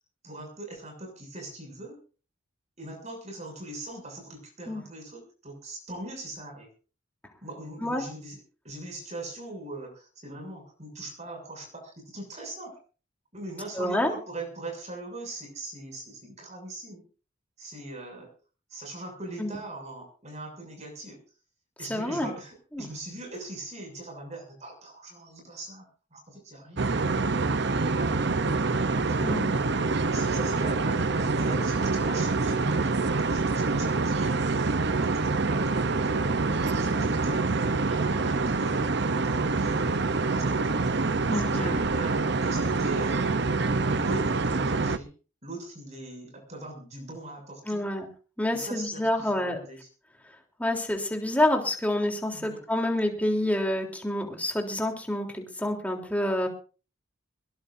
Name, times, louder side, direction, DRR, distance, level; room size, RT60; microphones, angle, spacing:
voice 1, 0.2-2.0 2.8-6.7 7.4-8.4 8.6-12.8 13.3-17.0 17.6-18.3 18.7-21.2 21.8-25.9 26.1-26.9 27.9-28.3 29.1-29.4 30.1-34.7 35.0-40.9 41.3-43.7 43.9-45.1 45.4-47.8 48.5-49.9 52.3-52.6, right 2 dB, 35° right, 2 dB, 7.0 m, -41 dB
voice 2, 13.8-14.1 19.4-19.5 21.9-22.3 22.7-22.9 29.2-29.6 41.3-41.8 47.7-48.0 48.4-49.6 50.6-56.5, left 1 dB, 10° left, 2 dB, 3.6 m, -28 dB
sound 1, 26.8-45.0, right 3 dB, 60° right, 0.8 m, -26 dB
21.5 x 19.5 x 2.7 m, 0.38 s
head